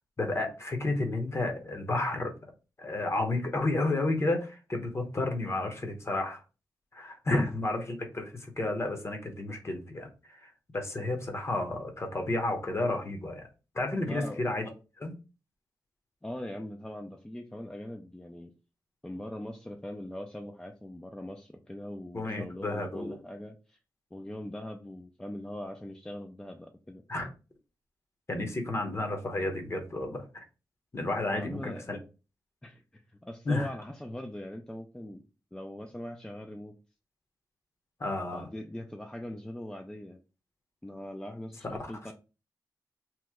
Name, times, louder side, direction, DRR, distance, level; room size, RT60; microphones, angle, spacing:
voice 1, 0.2-2.3 2.8-6.4 6.9-13.5 13.7-14.7 15.0-15.1 22.1-23.2 27.1-27.3 28.3-30.2 30.9-32.0 33.5-33.7 38.0-38.5, left 2 dB, 35° left, 4 dB, 0.9 m, -31 dB
voice 2, 14.0-14.4 16.2-18.5 19.0-23.8 24.1-27.0 31.3-31.9 32.6-35.2 35.5-36.8 38.3-40.2 40.8-42.1, left 1 dB, 10° left, 4 dB, 0.4 m, -41 dB
3.0 x 2.1 x 3.4 m, 0.32 s
cardioid pair, 70°, 8 cm